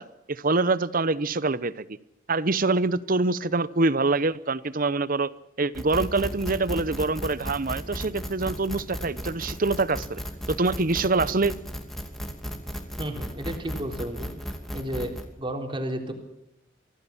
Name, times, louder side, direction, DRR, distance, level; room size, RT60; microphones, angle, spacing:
voice 1, 0.0-1.9 2.3-5.3 5.6-10.2 10.5-11.5, right 3 dB, 45° right, 17 dB, 0.9 m, -25 dB
sound 1, 5.7-15.2, equal, ahead, 2.7 m, -35 dB
voice 2, 13.0-14.3 14.7-15.1 15.4-16.1, right 1 dB, 25° right, 4 dB, 3.8 m, -32 dB
25.0 x 16.5 x 7.2 m, 0.87 s
head